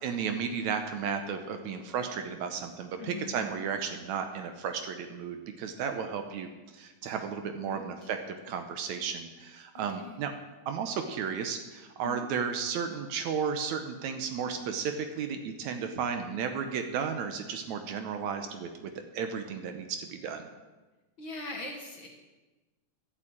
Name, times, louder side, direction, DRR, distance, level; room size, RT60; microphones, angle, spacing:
voice 1, 0.0-6.5 6.7-10.3 10.7-20.5, right 6 dB, 70° right, 6 dB, 2.1 m, -34 dB
voice 2, 3.0-3.4 7.6-8.1 9.7-10.2 12.0-12.3 21.2-22.1, left 3 dB, 45° left, 1 dB, 1.8 m, -41 dB
11.5 x 7.4 x 8.7 m, 1.2 s
omnidirectional pair, 3.6 m